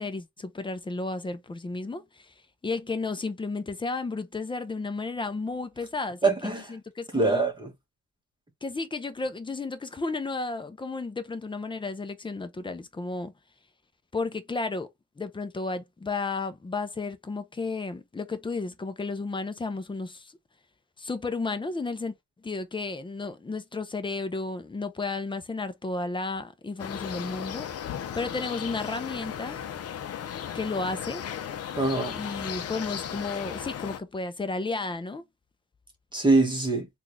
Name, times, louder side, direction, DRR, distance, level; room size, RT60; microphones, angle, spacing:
voice 1, 0.0-2.3 2.6-7.5 8.6-13.3 14.1-14.9 15.2-20.4 21.0-22.2 22.4-27.7 28.1-29.6 30.5-31.2 32.1-35.2, left 3 dB, 15° left, 0.7 m, -33 dB
voice 2, 6.2-6.7 7.1-7.7 31.8-32.2 36.1-36.9, right 3 dB, 15° right, 1.3 m, -23 dB
sound 1, 26.8-34.0, left 9 dB, 55° left, 0.7 m, -36 dB
3.7 x 2.6 x 3.1 m
cardioid pair, 90°, 30 cm